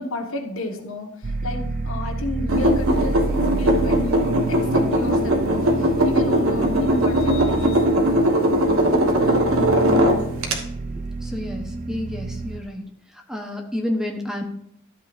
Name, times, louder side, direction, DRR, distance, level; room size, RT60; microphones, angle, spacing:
voice 1, 0.0-7.9 8.2-8.6 9.1-9.8, left 2 dB, 75° left, 3 dB, 1.7 m, -31 dB
sound 1, 1.2-12.6, right 3 dB, 40° right, 0.6 m, -29 dB
sound 2, 2.5-10.6, equal, 85° right, 1.5 m, -20 dB
voice 2, 11.2-12.8 13.3-14.4, left 1 dB, 5° right, 2 dB, 1.0 m, -29 dB
13.0 x 8.2 x 2.6 m, 0.73 s
head